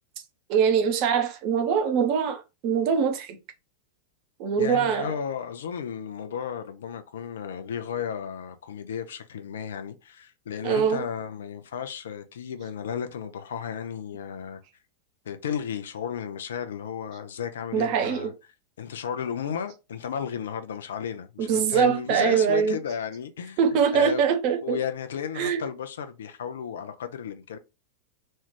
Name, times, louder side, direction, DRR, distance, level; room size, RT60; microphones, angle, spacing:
voice 1, 0.5-3.4 4.4-5.1 10.6-11.0 17.7-18.3 21.4-22.8 23.6-24.8 25.4-25.6, right 7 dB, 45° right, 0.7 m, -23 dB
voice 2, 4.6-14.6 15.2-18.3 18.8-23.6 23.9-24.3 24.6-27.6, left 7 dB, 65° left, 0.5 m, -34 dB
3.1 x 2.4 x 3.1 m
figure-of-eight pair, 90°, 0 cm